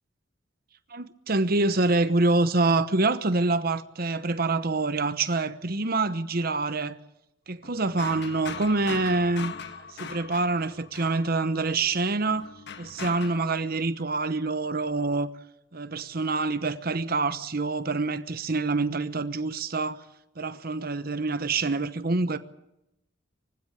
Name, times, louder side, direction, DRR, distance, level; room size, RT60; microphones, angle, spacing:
voice 1, 0.9-7.0 7.5-12.5 12.8-15.3 15.7-20.0 20.4-22.4, right 3 dB, 50° right, 1.0 m, -26 dB
sound 1, 7.6-11.7 12.3-13.5, left 5 dB, 60° left, 1.4 m, -40 dB
25.0 x 16.0 x 8.3 m
head